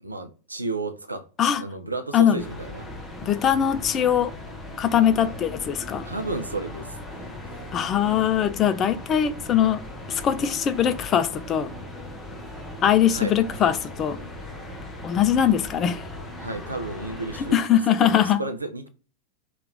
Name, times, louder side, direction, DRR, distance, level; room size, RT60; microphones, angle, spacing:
voice 1, 0.0-2.9 6.0-7.3 13.1-13.6 16.4-18.9, right 2 dB, 80° right, 0.4 m, -33 dB
sound 1, 2.4-17.6, left 1 dB, 5° left, 0.7 m, -38 dB
voice 2, 3.2-4.3 4.8-6.0 7.7-9.8 10.1-11.7 12.8-14.2 15.0-16.0 17.4-18.4, left 9 dB, 30° left, 0.3 m, -21 dB
2.9 x 2.4 x 3.3 m
figure-of-eight pair, 90°, 0 cm